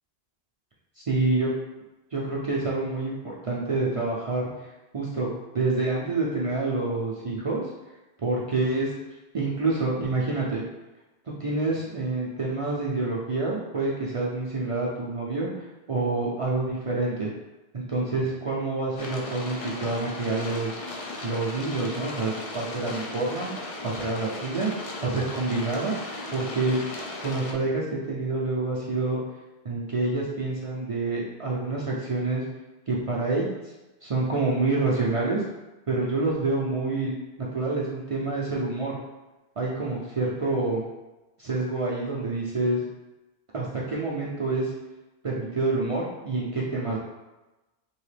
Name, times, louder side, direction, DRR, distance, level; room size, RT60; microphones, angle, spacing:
voice 1, 1.0-1.5 2.1-7.6 8.2-8.9 9.3-10.6 11.3-17.3 17.7-20.8 21.2-24.7 25.0-25.9 26.3-26.8 27.2-29.2 29.6-32.4 32.9-33.7 34.0-35.4 35.9-37.1 37.5-39.0 39.6-40.8 41.4-42.8 43.5-44.7 45.2-47.0, right 3 dB, 50° right, -5 dB, 0.4 m, -27 dB
sound 1, 19.0-27.5, left 2 dB, 50° left, 0.4 m, -37 dB
3.1 x 2.8 x 3.2 m, 1.1 s
omnidirectional pair, 1.1 m